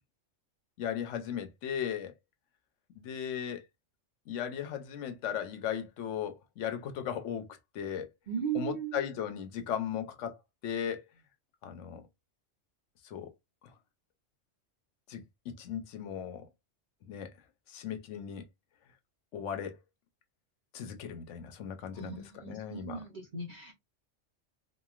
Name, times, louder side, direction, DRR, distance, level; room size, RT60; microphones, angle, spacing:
voice 1, 0.8-2.1 3.0-3.6 4.3-7.5 7.7-8.1 8.5-10.4 10.6-11.0 11.6-12.0 13.0-13.3 15.1-16.5 17.1-17.3 17.7-18.4 19.3-19.7 20.7-23.0, left 8 dB, 80° left, 0.9 m, -37 dB
voice 2, 8.3-8.9 22.0-23.7, right 7 dB, 45° right, 0.7 m, -37 dB
3.0 x 2.3 x 2.3 m
omnidirectional pair, 1.3 m